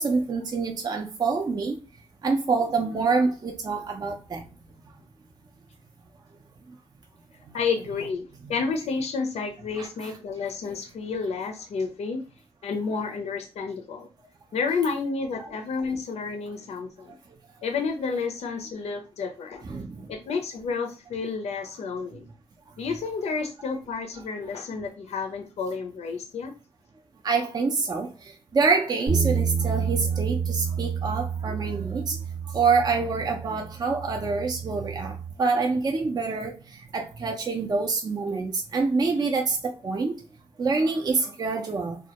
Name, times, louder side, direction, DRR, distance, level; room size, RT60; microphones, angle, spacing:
voice 1, 0.0-1.8 2.2-4.4 9.8-10.1 15.4-15.5 19.6-20.1 27.2-28.1 28.5-32.2 32.5-40.1 40.6-42.0, right 4 dB, 35° right, 2 dB, 0.4 m, -26 dB
voice 2, 7.5-12.2 12.6-14.1 14.5-17.1 17.6-19.6 20.1-22.2 22.8-26.5 41.5-41.6, left 5 dB, 70° left, 5 dB, 0.4 m, -30 dB
sound 1, 29.1-35.3, right 6 dB, 80° right, 0.9 m, -29 dB
2.1 x 2.0 x 2.8 m, 0.33 s
cardioid pair, 60°, 11 cm